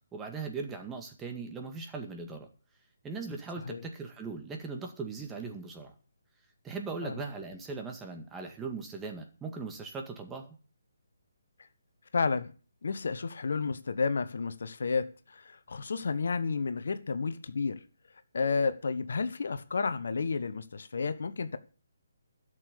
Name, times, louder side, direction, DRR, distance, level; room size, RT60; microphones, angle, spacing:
voice 1, 0.1-2.5 3.0-5.9 6.6-10.6, right 4 dB, 10° right, 1.9 m, -39 dB
voice 2, 12.1-12.5 12.8-17.8 18.3-21.6, left 4 dB, 65° left, 1.2 m, -31 dB
12.5 x 6.8 x 8.5 m
figure-of-eight pair, 150°, 0 cm